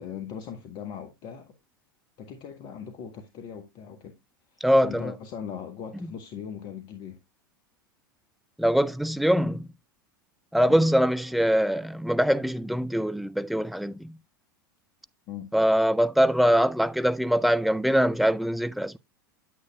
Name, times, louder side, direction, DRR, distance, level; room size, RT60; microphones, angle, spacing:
voice 1, 0.0-1.5 2.2-4.1 4.5-7.2 10.6-10.9 15.3-15.5, left 8 dB, 40° left, 1.1 m, -39 dB
voice 2, 4.6-5.1 8.6-9.7 10.5-14.2 15.5-19.0, equal, ahead, 0.3 m, -23 dB
9.1 x 8.1 x 2.2 m
figure-of-eight pair, 85°, 12 cm